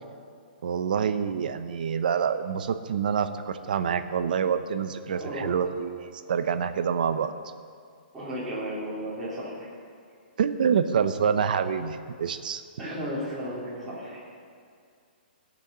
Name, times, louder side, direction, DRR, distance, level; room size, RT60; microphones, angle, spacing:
voice 1, 0.6-7.3 10.4-12.6, right 7 dB, 55° right, 10 dB, 0.7 m, -27 dB
voice 2, 5.1-5.7 8.1-9.7 12.8-14.2, equal, 5° right, -12 dB, 3.1 m, -34 dB
17.5 x 6.3 x 6.8 m, 2.2 s
hypercardioid pair, 175°, 5 cm